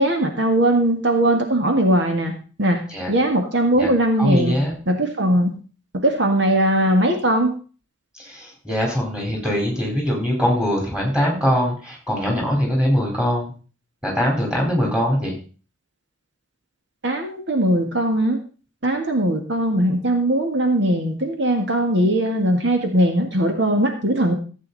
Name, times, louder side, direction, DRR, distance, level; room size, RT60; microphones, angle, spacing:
voice 1, 0.0-2.3 2.6-2.8 3.1-4.5 4.9-5.6 5.9-7.6 17.0-18.4 18.8-24.4, right 1 dB, 60° right, 4 dB, 1.8 m, -19 dB
voice 2, 4.2-4.7 8.1-13.5 14.0-15.4, equal, 5° right, -1 dB, 4.3 m, -22 dB
15.5 x 8.5 x 4.1 m, 0.37 s
head